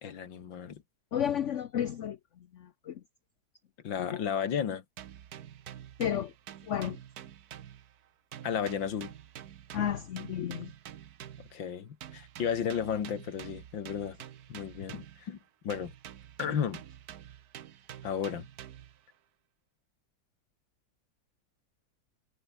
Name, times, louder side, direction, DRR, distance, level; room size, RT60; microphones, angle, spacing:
voice 1, 0.0-0.8 3.8-4.8 8.4-9.1 11.4-14.2 14.5-15.4 15.6-15.9 16.4-16.8 18.0-18.5, left 8 dB, 80° left, 2.4 m, -33 dB
voice 2, 1.1-2.2 2.9-3.0 4.1-4.2 6.0-6.3 6.7-7.0 9.7-10.7, left 9 dB, 60° left, 0.8 m, -31 dB
sound 1, 5.0-8.1 8.3-11.6 12.0-15.3 15.7-19.0, right 10 dB, 60° right, 1.3 m, -48 dB
omnidirectional pair, 2.0 m